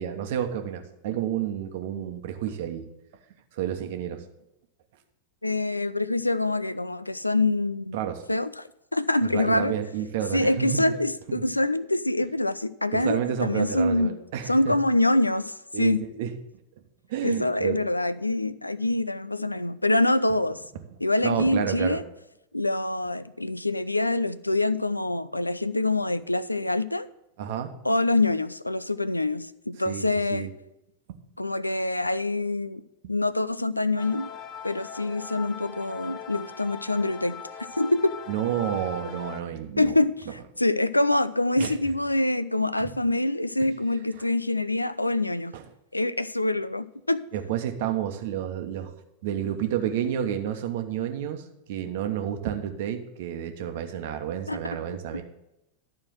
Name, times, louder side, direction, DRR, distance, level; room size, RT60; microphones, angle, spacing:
voice 1, 0.0-2.9 3.5-4.2 7.9-8.2 9.2-10.9 11.3-11.4 12.9-14.8 15.7-16.3 17.1-17.8 21.2-22.0 27.4-27.7 29.8-30.5 38.3-40.0 41.6-41.8 42.8-42.9 44.2-44.3 45.5-45.6 47.3-48.9 49.2-55.2, right 10 dB, 50° right, 7 dB, 1.0 m, -30 dB
voice 2, 5.4-8.0 8.3-9.8 10.3-14.1 14.5-16.0 17.2-20.6 21.0-22.0 22.5-27.1 27.8-30.5 31.4-32.8 33.1-34.3 34.6-37.4 37.8-38.1 39.8-45.5 45.9-47.2 54.5-54.6, left 2 dB, 85° left, 16 dB, 0.4 m, -25 dB
sound 1, 34.0-39.4, left 7 dB, 35° left, 0.8 m, -40 dB
12.0 x 4.4 x 7.6 m, 0.87 s
figure-of-eight pair, 90°, 0 cm